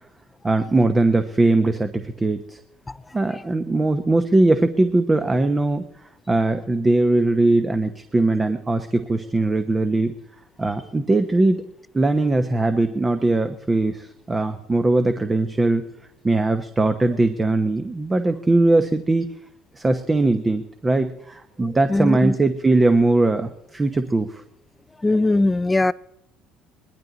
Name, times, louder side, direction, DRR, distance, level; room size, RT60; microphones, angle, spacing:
voice 1, 0.4-2.6 3.1-5.8 6.3-10.1 10.6-11.6 11.9-15.8 16.2-19.3 19.8-24.4, right 2 dB, 20° right, 1.0 m, -20 dB
voice 2, 21.9-22.3 25.0-25.9, left 2 dB, 15° left, 0.4 m, -19 dB
20.0 x 12.0 x 4.1 m
supercardioid pair, 90°, 0 cm